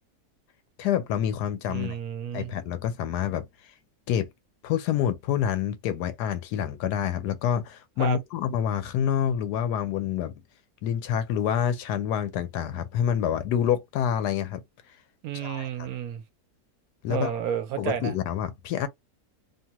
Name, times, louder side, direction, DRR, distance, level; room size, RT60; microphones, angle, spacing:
voice 1, 0.8-2.0 2.3-3.5 4.1-4.3 4.6-10.4 10.8-14.6 15.4-15.9 17.0-17.3 17.8-18.9, left 9 dB, 85° left, 1.2 m, -27 dB
voice 2, 1.7-2.5 8.0-8.2 15.2-16.2 17.1-18.1, right 9 dB, 70° right, 1.1 m, -31 dB
2.9 x 2.2 x 2.9 m
omnidirectional pair, 1.7 m